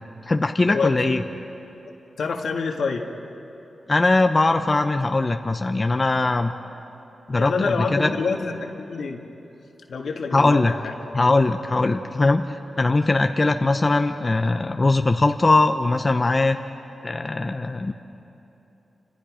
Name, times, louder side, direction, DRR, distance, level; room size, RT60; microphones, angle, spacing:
voice 1, 0.2-1.2 3.9-6.5 7.3-8.1 10.3-10.7 11.1-16.6 17.0-17.9, left 2 dB, 35° left, 6 dB, 0.8 m, -20 dB
voice 2, 0.7-1.2 2.2-3.1 7.4-9.2 9.9-10.9, left 4 dB, 80° left, 2 dB, 2.0 m, -27 dB
30.0 x 26.0 x 5.1 m, 3.0 s
cardioid pair, 75°, 0 cm